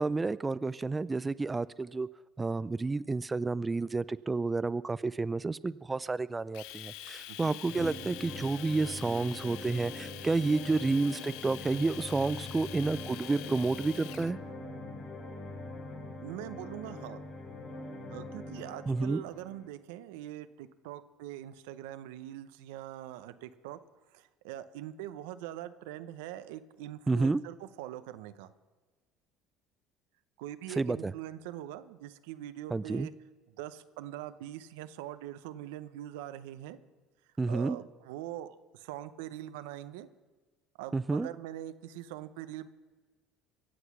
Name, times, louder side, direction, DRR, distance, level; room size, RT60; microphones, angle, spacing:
voice 1, 0.0-2.1 2.4-14.4 18.9-19.2 27.1-27.4 30.8-31.1 32.7-33.1 37.4-37.8 40.9-41.3, right 3 dB, 20° right, 16 dB, 0.4 m, -30 dB
Domestic sounds home sounds, 6.5-14.3, left 15 dB, 80° left, 0.5 m, -45 dB
voice 2, 7.3-7.6 16.2-17.2 18.1-23.8 24.1-28.5 30.4-33.1 33.6-36.8 37.5-40.1 40.8-42.7, right 13 dB, 85° right, 12 dB, 0.8 m, -43 dB
sound 1, 7.7-19.7, left 2 dB, 55° left, 3.9 m, -43 dB
23.5 x 8.0 x 6.1 m, 1.4 s
supercardioid pair, 95°, 0 cm